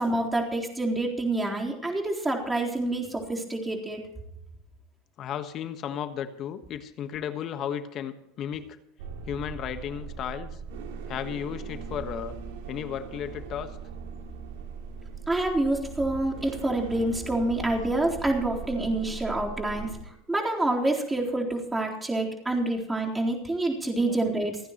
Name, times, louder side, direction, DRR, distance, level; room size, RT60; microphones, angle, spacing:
voice 1, 0.0-4.0 15.3-24.6, right 2 dB, 10° right, -1 dB, 3.9 m, -27 dB
voice 2, 5.2-8.7 9.3-10.6 11.1-12.4 12.7-13.8 24.1-24.2, left 9 dB, 45° left, 10 dB, 1.4 m, -34 dB
sound 1, 9.0-20.0, right 5 dB, 75° right, 2.6 m, -39 dB
29.0 x 9.8 x 3.1 m, 0.82 s
hypercardioid pair, 100°, 0 cm